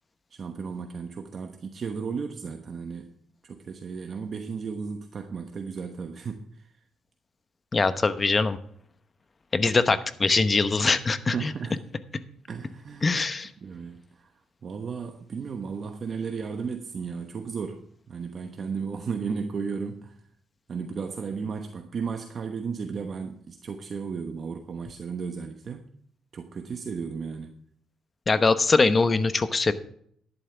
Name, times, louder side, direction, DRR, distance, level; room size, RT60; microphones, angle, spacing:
voice 1, 0.3-3.1 3.4-6.8 9.8-9.9 11.3-11.9 12.5-13.2 13.6-14.3 14.6-20.2 20.7-25.9 26.3-27.6, right 5 dB, 45° right, 1.1 m, -34 dB
voice 2, 7.7-8.6 9.5-11.5 13.0-13.5 28.3-29.7, left 3 dB, 30° left, 1.0 m, -22 dB
12.5 x 11.0 x 3.4 m
cardioid pair, 105°, 0 cm